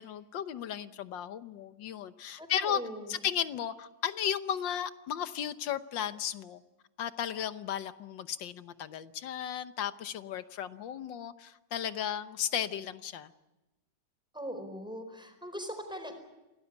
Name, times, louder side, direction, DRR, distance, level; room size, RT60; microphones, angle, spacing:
voice 1, 0.0-2.8 3.1-6.6 7.0-13.3, left 9 dB, 85° left, 12 dB, 1.7 m, -35 dB
voice 2, 2.4-3.1 14.3-16.3, equal, ahead, 5 dB, 4.5 m, -40 dB
26.5 x 18.0 x 8.2 m, 1.0 s
omnidirectional pair, 2.0 m